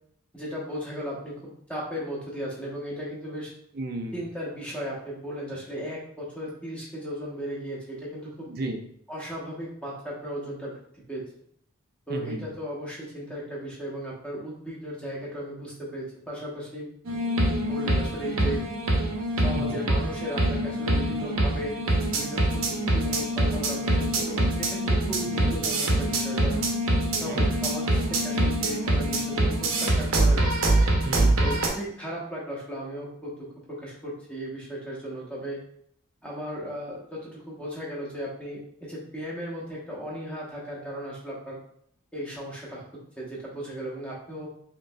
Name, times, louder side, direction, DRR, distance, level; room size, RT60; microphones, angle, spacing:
voice 1, 0.3-1.4 1.7-3.5 4.1-8.5 9.1-10.7 11.1-11.3 12.1-16.9 17.6-18.6 19.4-21.8 22.1-26.6 27.2-30.5 31.4-33.3 33.7-35.6 36.2-41.6 42.1-42.8 43.2-44.5, equal, 5° left, -5 dB, 1.0 m, -36 dB
voice 2, 3.7-4.2 8.5-8.8 12.1-12.6 19.6-19.8 25.3-25.6 27.3-27.5 31.0-31.6, right 2 dB, 45° right, 5 dB, 0.5 m, -34 dB
sound 1, 17.0-31.7, right 1 dB, 80° right, 0.8 m, -24 dB
5.0 x 3.0 x 2.3 m, 0.67 s
head